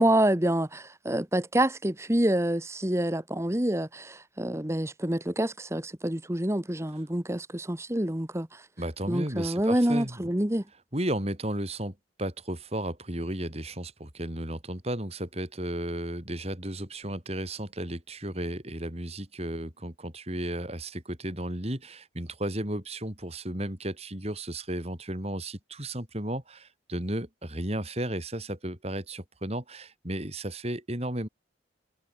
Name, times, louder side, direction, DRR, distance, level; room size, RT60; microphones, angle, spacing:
voice 1, 0.0-8.6 9.1-10.6, right 1 dB, 15° right, 1.4 m, -27 dB
voice 2, 8.8-10.3 10.9-31.3, right 1 dB, 35° right, 5.3 m, -34 dB
head